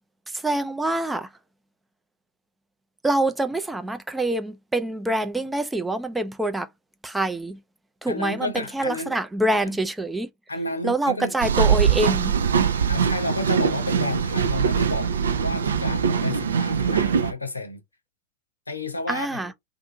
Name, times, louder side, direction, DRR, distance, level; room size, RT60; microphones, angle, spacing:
voice 1, 0.3-1.3 3.0-6.7 7.0-7.6 8.0-10.3 10.8-12.4 19.1-19.5, right 1 dB, 5° right, 0.4 m, -25 dB
voice 2, 8.1-9.2 9.7-9.8 10.5-11.3 12.9-15.1 15.4-17.8 18.7-19.4, left 2 dB, 80° left, 0.7 m, -31 dB
sound 1, 11.4-17.3, right 7 dB, 65° right, 0.4 m, -22 dB
2.6 x 2.5 x 2.6 m
figure-of-eight pair, 90°, 0 cm